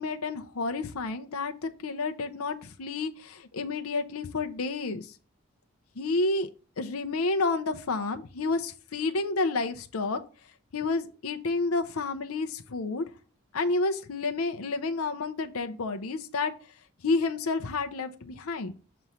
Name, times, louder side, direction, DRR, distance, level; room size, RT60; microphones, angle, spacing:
voice 1, 0.0-5.2 6.0-6.5 6.8-10.2 10.7-13.0 13.5-16.5 17.0-18.7, left 3 dB, 85° left, 7 dB, 0.7 m, -30 dB
6.9 x 3.1 x 5.5 m, 0.36 s
head